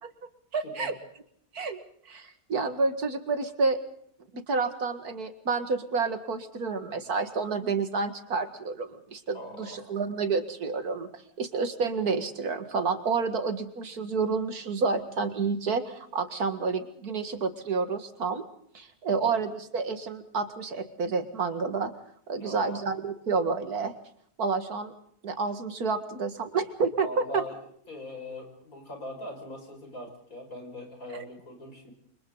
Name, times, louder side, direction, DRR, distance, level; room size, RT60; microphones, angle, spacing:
voice 1, 0.5-0.9 1.5-1.8 2.1-3.8 4.3-18.4 18.7-21.9 22.3-23.9 24.4-24.9 25.2-27.4, right 4 dB, 75° right, 8 dB, 2.4 m, -29 dB
voice 2, 9.3-9.8 19.1-19.3 22.3-22.8 27.0-27.6 27.9-31.9, left 1 dB, 65° left, 3 dB, 6.3 m, -41 dB
30.0 x 25.0 x 4.0 m, 0.63 s
omnidirectional pair, 1.6 m